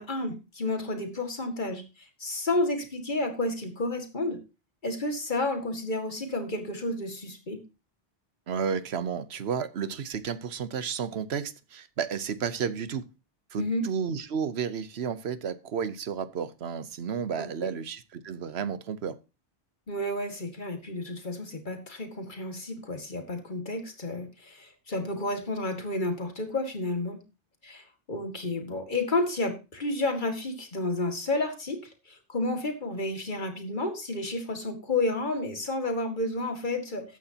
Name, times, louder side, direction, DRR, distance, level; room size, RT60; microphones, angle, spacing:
voice 1, 0.0-4.4 4.8-7.6 13.6-13.9 17.4-17.7 19.9-27.2 27.6-37.2, left 2 dB, 45° left, 2.1 m, -31 dB
voice 2, 8.5-13.1 13.5-19.2, right 7 dB, 65° right, 1.1 m, -32 dB
14.0 x 9.6 x 2.8 m
omnidirectional pair, 1.2 m